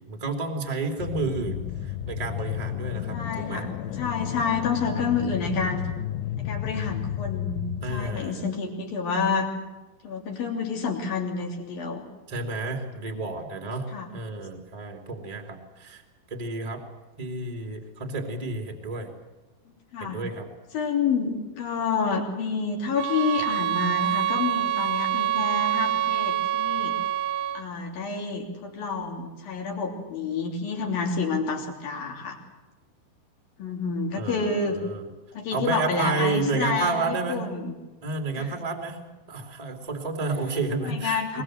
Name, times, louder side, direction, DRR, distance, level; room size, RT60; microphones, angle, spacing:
voice 1, 0.1-3.6 7.8-8.5 12.3-13.9 14.1-16.0 16.3-16.8 17.2-19.1 20.0-20.5 34.2-35.1 35.5-37.4 38.0-39.0 39.3-41.4, right 3 dB, 10° right, 4 dB, 2.3 m, -30 dB
sound 1, 1.0-8.3, left 11 dB, 85° left, 3.1 m, -32 dB
voice 2, 1.2-1.8 3.1-3.7 4.0-5.9 6.4-9.5 10.0-12.0 13.9-14.1 19.9-20.2 20.7-27.0 27.5-32.4 33.6-34.8 35.3-37.7 38.4-38.5 40.8-41.4, left 5 dB, 60° left, 1 dB, 4.8 m, -29 dB
sound 2, 22.9-27.7, right 12 dB, 85° right, 3.2 m, -26 dB
22.5 x 22.0 x 7.9 m, 1.1 s
omnidirectional pair, 4.8 m